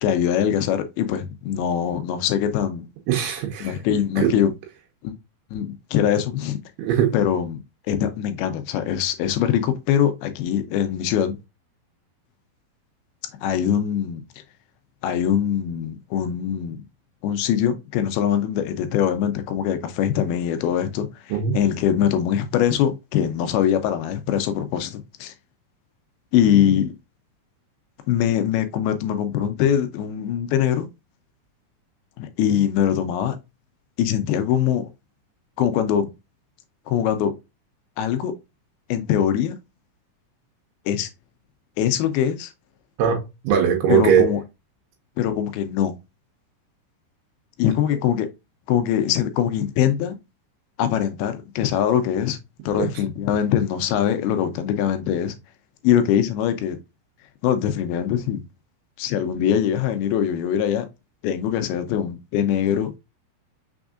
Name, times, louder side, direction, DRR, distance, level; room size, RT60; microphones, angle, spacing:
voice 1, 0.0-2.9 3.6-4.5 5.0-5.1 5.5-6.6 7.1-7.6 7.9-11.4 13.4-14.2 15.0-16.8 17.2-25.3 26.3-26.9 28.1-30.9 32.2-33.4 34.0-34.9 35.6-36.1 36.9-37.3 38.0-38.3 38.9-39.6 40.9-41.1 41.8-42.5 43.9-44.4 45.2-45.9 47.6-48.3 48.7-50.2 50.8-52.4 52.7-55.4 55.8-56.8 57.4-58.4 59.0-60.9 61.2-62.9, left 9 dB, 80° left, 2.4 m, -22 dB
voice 2, 3.1-3.8 4.2-4.4 6.8-7.1 21.3-21.6 43.0-44.3 52.8-52.9, right 8 dB, 85° right, 2.8 m, -20 dB
6.2 x 3.5 x 2.4 m
omnidirectional pair, 4.6 m